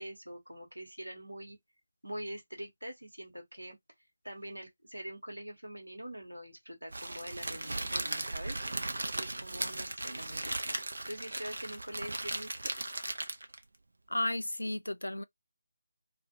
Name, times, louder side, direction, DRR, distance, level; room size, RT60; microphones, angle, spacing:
voice 1, 0.0-1.6 2.0-3.8 4.2-8.6 9.2-12.5, equal, 85° right, 1.0 m, -44 dB
Crackle, 6.9-13.6, right 2 dB, 60° right, 0.5 m, -37 dB
voice 2, 14.1-15.2, left 1 dB, 75° left, 0.3 m, -33 dB
2.5 x 2.2 x 2.7 m
figure-of-eight pair, 155°, 0 cm